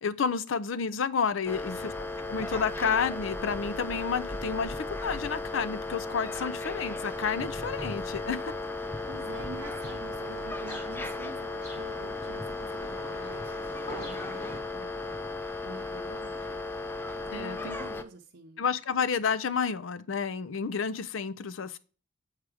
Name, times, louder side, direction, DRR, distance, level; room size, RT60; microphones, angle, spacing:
voice 1, 0.0-1.9 2.3-8.5 17.3-17.8 18.6-21.8, left 6 dB, 85° left, 0.5 m, -30 dB
sound 1, 1.5-18.0, left 2 dB, 10° left, 0.5 m, -35 dB
sound 2, 8.8-14.6, equal, 30° left, 2.8 m, -46 dB
voice 2, 9.1-15.3 15.6-16.6 17.3-18.6, right 3 dB, 65° right, 0.7 m, -47 dB
8.2 x 4.8 x 4.9 m
head